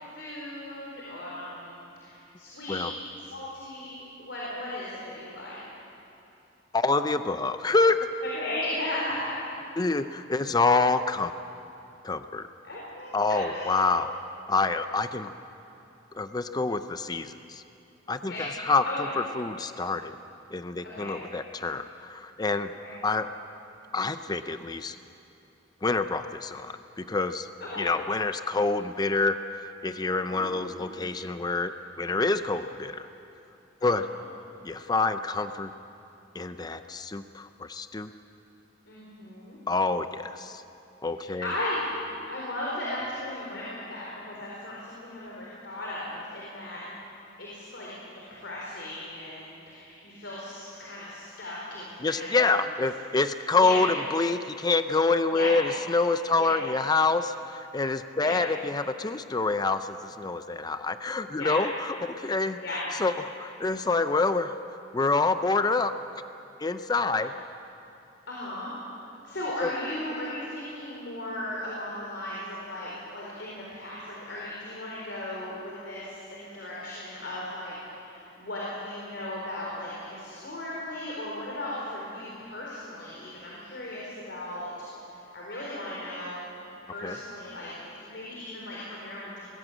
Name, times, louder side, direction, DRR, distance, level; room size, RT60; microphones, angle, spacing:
voice 1, 0.1-2.9 3.3-5.6 8.2-9.4 12.6-13.8 18.3-18.4 18.9-19.1 20.8-21.1 22.8-22.9 27.6-27.9 30.2-31.0 33.8-34.2 38.9-39.6 41.1-41.9 42.3-46.8 47.4-48.0 48.3-52.6 53.6-53.8 55.3-55.5 56.4-56.6 58.2-58.4 61.4-61.6 62.6-62.9 68.3-68.7 69.2-84.7 85.3-86.4 86.8-87.7 88.1-89.4, left 1 dB, 65° left, -5 dB, 4.3 m, -36 dB
voice 2, 6.7-8.0 9.8-11.3 12.0-12.4 13.1-14.1 14.5-15.3 16.1-17.6 18.1-20.1 20.5-22.7 23.0-23.3 23.9-25.0 25.8-27.5 27.8-33.1 33.8-34.1 34.6-35.7 36.3-38.1 39.7-40.6 41.0-41.5 52.0-62.6 63.0-64.6 64.9-65.9 66.6-67.3 69.6-69.7 87.0-87.2, left 3 dB, 20° left, 10 dB, 0.5 m, -27 dB
21.0 x 16.0 x 8.6 m, 2.7 s
head